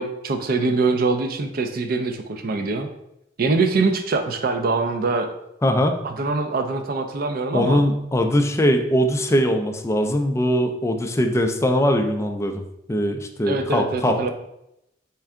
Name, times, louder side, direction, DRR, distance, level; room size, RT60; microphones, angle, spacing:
voice 1, 0.0-2.9 3.4-5.3 6.0-7.8 13.5-14.3, right 3 dB, 50° right, 6 dB, 0.4 m, -23 dB
voice 2, 5.6-5.9 7.5-12.6 12.9-14.3, equal, 15° left, 5 dB, 0.3 m, -21 dB
4.4 x 3.3 x 3.6 m, 0.83 s
head